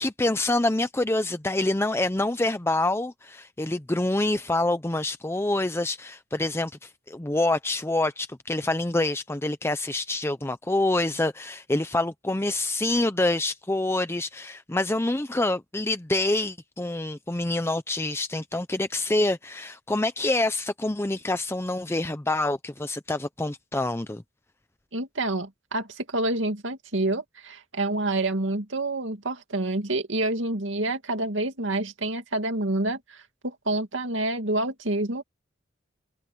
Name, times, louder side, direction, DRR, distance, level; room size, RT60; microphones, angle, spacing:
voice 1, 0.0-24.2, left 2 dB, 15° left, 0.6 m, -26 dB
voice 2, 24.9-35.2, right 2 dB, 75° right, 2.5 m, -28 dB
head